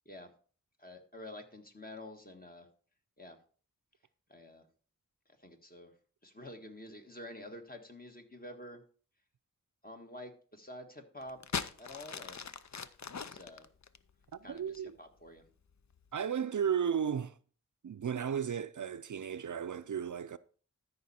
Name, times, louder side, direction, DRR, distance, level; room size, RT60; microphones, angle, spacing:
voice 1, 0.8-2.7 3.2-3.4 4.3-4.6 5.4-5.9 6.2-8.8 9.8-11.4 11.8-12.4 13.2-13.7 14.4-15.5, left 1 dB, 30° left, 1.6 m, -48 dB
sound 1, 11.2-14.9 15.7-16.1, left 6 dB, 60° left, 0.6 m, -40 dB
voice 2, 14.5-15.0 16.1-17.3 17.8-20.4, right 8 dB, 65° right, 0.5 m, -34 dB
13.0 x 5.5 x 4.2 m
wide cardioid pair, 45°, 32 cm